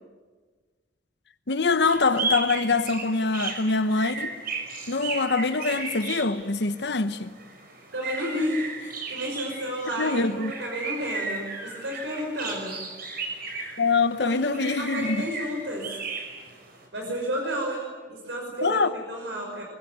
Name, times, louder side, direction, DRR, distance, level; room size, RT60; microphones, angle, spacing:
voice 1, 1.5-4.3 4.9-7.3 10.0-10.5 13.8-15.3 18.6-18.9, left 3 dB, 65° left, 1.0 m, -24 dB
sound 1, 1.9-16.8, right 4 dB, 55° right, 5.5 m, -35 dB
voice 2, 7.9-12.8 14.2-16.0 16.9-19.6, equal, 80° right, 5.7 m, -32 dB
25.0 x 21.0 x 9.4 m
head